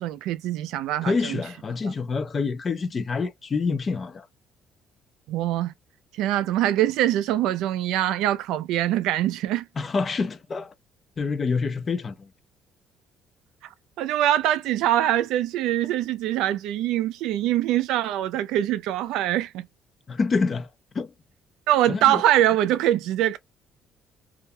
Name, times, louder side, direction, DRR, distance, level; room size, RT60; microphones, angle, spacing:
voice 1, 0.0-1.4 5.3-5.7 6.2-9.7 14.0-19.7 21.7-23.4, right 12 dB, 85° right, 0.4 m, -23 dB
voice 2, 1.0-4.3 9.8-10.7 11.2-12.3 20.1-20.7 20.9-21.1 21.9-22.2, left 4 dB, 25° left, 0.3 m, -27 dB
2.4 x 2.2 x 2.6 m
cardioid pair, 180°, 0 cm